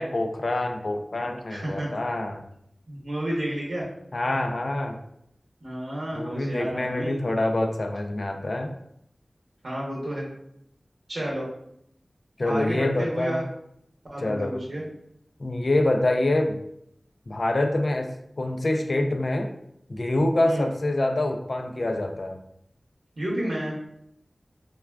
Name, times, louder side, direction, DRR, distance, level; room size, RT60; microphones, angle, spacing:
voice 1, 0.0-2.4 4.1-5.0 6.1-8.7 12.4-13.4 14.2-14.5 15.4-16.6 17.3-19.5 19.9-22.4, left 1 dB, 65° left, 5 dB, 0.3 m, -26 dB
voice 2, 1.5-1.9 2.9-3.9 5.6-7.2 9.6-10.3 11.1-11.5 12.4-13.4 14.1-14.8 20.4-20.7 23.2-23.8, right 1 dB, 85° right, -5 dB, 0.7 m, -31 dB
3.4 x 2.2 x 2.2 m, 0.74 s
wide cardioid pair, 50°, 0 cm